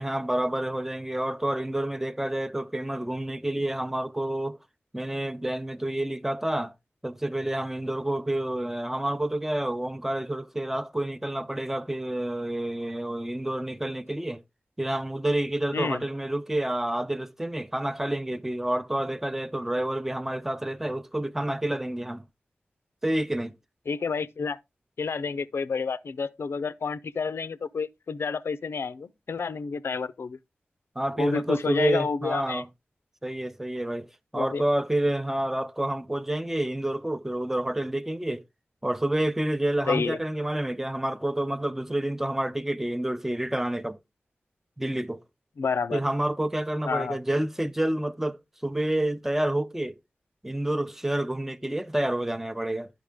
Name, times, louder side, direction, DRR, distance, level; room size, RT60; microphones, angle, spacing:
voice 1, 0.0-4.6 4.9-6.7 7.0-14.4 14.8-22.2 23.0-23.5 31.0-32.7 33.2-34.1 34.3-38.4 38.8-44.0 44.8-45.2 45.9-49.9 50.4-52.9, right 1 dB, 10° right, 0.6 m, -29 dB
voice 2, 23.9-24.6 25.0-30.4 31.2-32.6 34.3-34.6 39.9-40.2 45.6-46.0 46.8-47.2, left 5 dB, 80° left, 0.6 m, -29 dB
11.5 x 5.8 x 3.6 m
wide cardioid pair, 95°, 4 cm